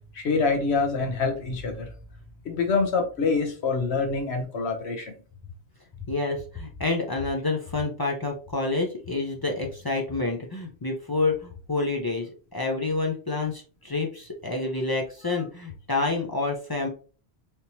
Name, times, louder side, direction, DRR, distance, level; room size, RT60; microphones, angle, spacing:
voice 1, 0.1-1.9 2.4-5.1, left 4 dB, 80° left, 4 dB, 1.1 m, -26 dB
voice 2, 6.1-16.9, left 3 dB, 35° left, 1 dB, 0.4 m, -28 dB
3.4 x 2.9 x 2.7 m, 0.38 s
omnidirectional pair, 1.1 m